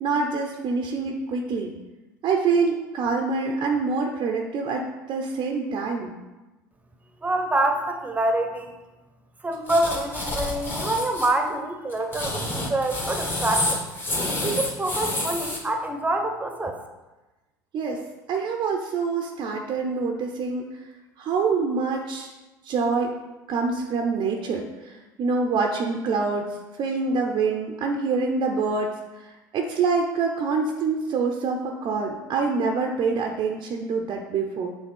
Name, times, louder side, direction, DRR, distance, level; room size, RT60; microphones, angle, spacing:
voice 1, 0.0-1.7 2.2-6.2 17.7-20.8 21.2-22.3 22.6-23.1 23.5-34.7, right 4 dB, 45° right, 2 dB, 0.7 m, -26 dB
voice 2, 7.2-8.7 9.4-12.4 12.7-13.8 14.4-16.8, right 1 dB, 15° right, 5 dB, 1.0 m, -26 dB
sound 1, 9.7-11.3 11.9-15.6, left 1 dB, 20° left, 1.7 m, -28 dB
6.1 x 3.6 x 5.4 m, 1.1 s
hypercardioid pair, 75°, 10 cm